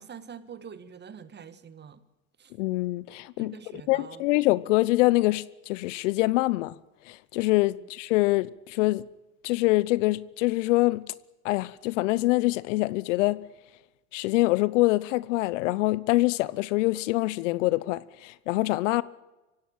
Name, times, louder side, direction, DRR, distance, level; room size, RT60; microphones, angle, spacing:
voice 1, 0.0-2.0 2.4-2.5 3.4-4.2 7.7-7.9, right 7 dB, 25° right, 1.6 m, -45 dB
voice 2, 2.6-3.6 3.9-6.7 7.1-9.1 9.4-11.1 11.4-13.4 14.1-19.0, left 20 dB, 60° left, 1.0 m, -25 dB
24.5 x 16.5 x 8.8 m
hypercardioid pair, 90°, 41 cm